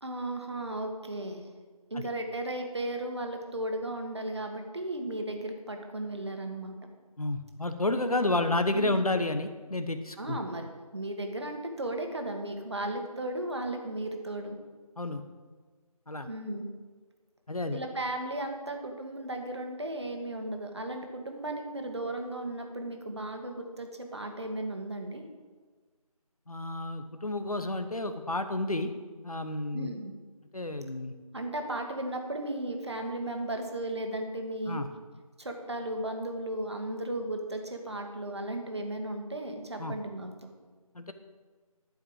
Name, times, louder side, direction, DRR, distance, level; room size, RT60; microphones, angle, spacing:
voice 1, 0.0-1.5 1.9-6.8 8.1-8.3 8.7-9.0 10.2-10.7 10.9-14.6 16.3-16.6 17.7-25.2 29.7-30.1 31.3-34.8 35.4-40.5, right 1 dB, 45° right, 4 dB, 1.8 m, -35 dB
voice 2, 7.2-10.4 15.0-15.2 16.1-16.3 17.5-17.8 26.5-28.9 29.2-29.9 30.5-31.1 34.7-34.9 39.8-39.9 40.9-41.1, left 2 dB, 70° left, 8 dB, 1.1 m, -30 dB
12.0 x 5.5 x 8.8 m, 1.4 s
figure-of-eight pair, 170°, 19 cm